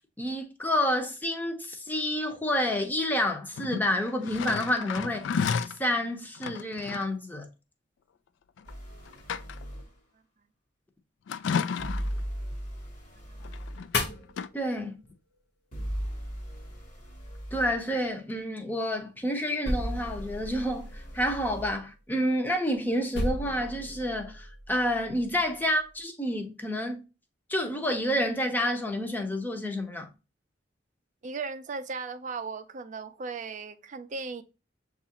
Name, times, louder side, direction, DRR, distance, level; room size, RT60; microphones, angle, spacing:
voice 1, 0.2-5.3 5.8-7.5 14.5-15.0 17.5-27.0 27.5-30.1, left 1 dB, 10° left, 0.7 m, -29 dB
sound 1, 3.5-5.8 6.4-7.1 8.6-8.7 9.1-9.8 11.3-12.2 13.4-14.0 14.3-14.5, left 6 dB, 85° left, 0.3 m, -32 dB
sound 2, 8.7-9.9 11.8-13.9 15.7-17.8 19.7-21.8, equal, 45° left, 1.2 m, -37 dB
sound 3, 13.9-15.1 15.4-15.5 19.6-22.0 23.1-25.9, left 1 dB, 60° left, 0.7 m, -36 dB
voice 2, 31.2-34.4, right 4 dB, 45° right, 0.4 m, -37 dB
7.2 x 2.4 x 2.8 m
head